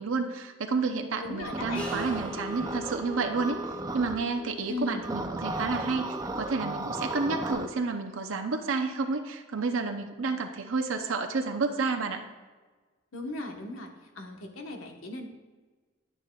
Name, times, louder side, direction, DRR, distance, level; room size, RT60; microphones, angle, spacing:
voice 1, 0.0-3.6 3.9-12.2, right 4 dB, 80° right, 4 dB, 0.6 m, -30 dB
voice 2, 1.2-1.8 4.7-5.1 13.1-13.9 14.1-15.3, left 2 dB, 85° left, 3 dB, 1.2 m, -37 dB
sound 1, 1.4-4.2 5.0-7.7, right 2 dB, 15° right, 0.4 m, -35 dB
sound 2, 1.7-7.5, equal, 5° left, 1.3 m, -42 dB
10.0 x 9.7 x 2.3 m, 1.4 s
head